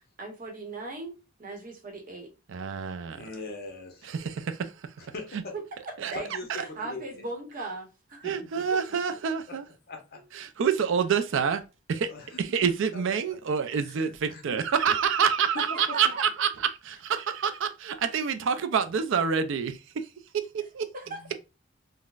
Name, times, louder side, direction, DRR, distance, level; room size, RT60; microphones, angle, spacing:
voice 1, 0.2-2.3 6.0-8.3 8.7-8.8 10.2-10.3 15.9-16.2 20.9-21.2, right 2 dB, 45° right, 0.9 m, -39 dB
voice 2, 2.5-3.2 4.1-4.9 6.0-6.1 8.2-9.7 10.3-11.6 11.9-12.1 12.4-20.1 20.3-20.9, right 7 dB, 65° right, 0.4 m, -27 dB
voice 3, 3.1-4.1 5.0-5.5 6.1-7.2 8.2-8.6 9.5-9.6 9.9-10.2 12.1-12.7 14.0-14.4 15.5-15.8 21.1-21.4, left 3 dB, 50° left, 0.9 m, -41 dB
3.9 x 2.1 x 2.3 m
head